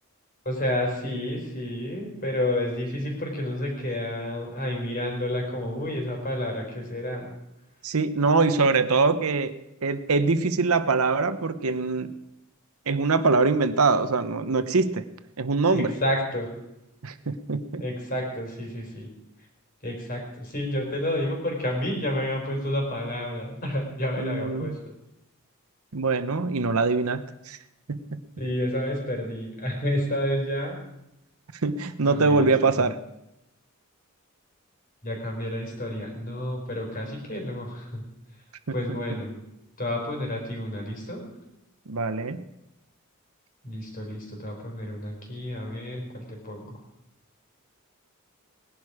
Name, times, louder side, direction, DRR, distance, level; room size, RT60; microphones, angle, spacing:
voice 1, 0.4-7.3 15.7-16.5 17.8-19.1 19.8-24.8 28.4-30.8 32.1-32.9 35.0-38.0 38.7-39.3 39.8-41.2 43.6-46.8, left 1 dB, 40° left, 1 dB, 4.4 m, -30 dB
voice 2, 7.8-9.5 9.8-12.1 12.9-15.1 15.4-15.9 17.0-17.8 24.2-24.8 25.9-27.6 27.9-28.2 31.6-33.0 41.9-42.4, right 4 dB, 75° right, 11 dB, 0.9 m, -23 dB
19.0 x 11.0 x 4.9 m, 0.88 s
head